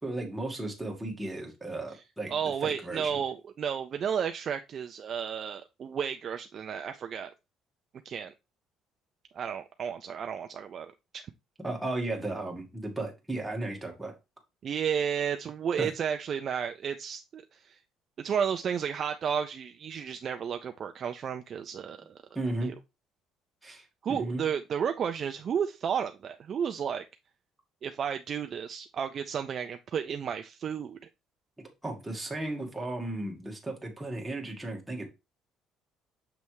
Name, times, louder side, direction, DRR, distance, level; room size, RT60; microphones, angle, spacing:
voice 1, 0.0-3.2 11.6-14.1 15.8-15.9 22.3-22.7 23.6-24.5 31.8-35.0, right 2 dB, 5° right, 1.4 m, -35 dB
voice 2, 2.3-7.3 8.1-8.3 9.3-11.2 14.6-17.8 18.2-22.2 22.6-22.7 24.0-27.0 27.8-31.0, right 7 dB, 35° right, 0.4 m, -32 dB
6.9 x 3.2 x 4.5 m
cardioid pair, 175°, 0 cm